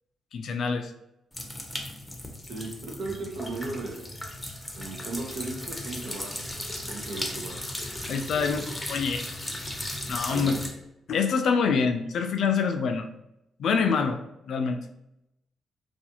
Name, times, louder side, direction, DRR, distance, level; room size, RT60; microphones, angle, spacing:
voice 1, 0.3-0.9 8.1-8.6 8.9-9.4 10.1-10.5 11.1-13.1 13.6-14.2 14.5-14.8, left 5 dB, 70° left, 6 dB, 0.3 m, -25 dB
sound 1, 1.3-10.7, left 1 dB, 10° left, 0.6 m, -36 dB
voice 2, 2.5-4.2 4.7-6.6 6.8-7.8 10.3-10.7, right 3 dB, 70° right, 0 dB, 0.7 m, -36 dB
2.4 x 2.3 x 2.8 m, 0.83 s
cardioid pair, 70°, 0 cm